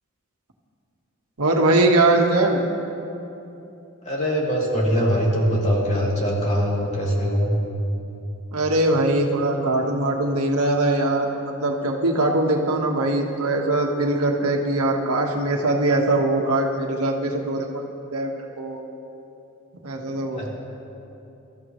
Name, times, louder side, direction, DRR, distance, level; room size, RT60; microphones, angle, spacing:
voice 1, 1.4-2.6 8.5-11.3 11.6-17.9 18.1-18.8 19.8-20.5, right 2 dB, 90° right, 1 dB, 1.5 m, -21 dB
voice 2, 4.0-7.6 20.3-20.5, equal, 30° left, -4 dB, 2.8 m, -22 dB
24.5 x 13.5 x 3.2 m, 2.8 s
head